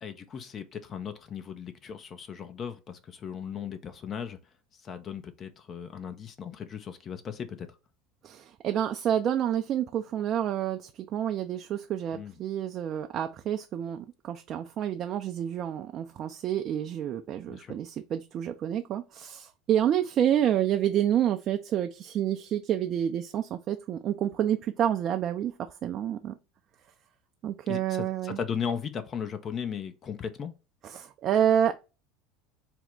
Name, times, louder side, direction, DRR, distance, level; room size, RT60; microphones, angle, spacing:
voice 1, 0.0-4.4 4.7-7.7 12.1-12.3 17.5-17.7 27.7-30.5, left 7 dB, 40° left, 0.5 m, -37 dB
voice 2, 8.2-25.5 25.8-26.4 27.4-28.4 30.8-31.7, right 10 dB, 45° right, 0.3 m, -28 dB
4.3 x 2.1 x 3.7 m
hypercardioid pair, 80°, 0 cm